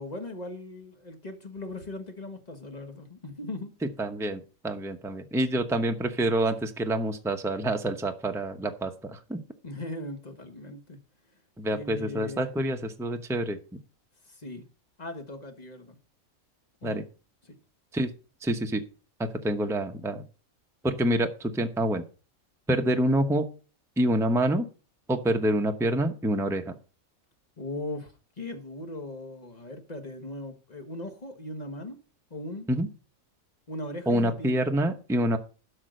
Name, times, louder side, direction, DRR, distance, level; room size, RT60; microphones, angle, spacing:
voice 1, 0.0-3.7 9.6-11.0 11.7-12.5 14.2-14.6 15.0-16.0 16.8-17.0 17.4-17.5 27.6-32.0 32.3-32.7 33.7-34.7, left 2 dB, 30° left, 1.6 m, -39 dB
voice 2, 4.0-9.4 11.6-13.6 16.8-17.0 17.9-18.1 18.4-18.8 19.2-20.2 20.8-22.0 22.7-23.5 24.0-24.7 25.1-26.7 32.7-32.9 34.1-35.4, right 1 dB, 5° right, 0.7 m, -27 dB
12.0 x 4.9 x 6.5 m
omnidirectional pair, 1.5 m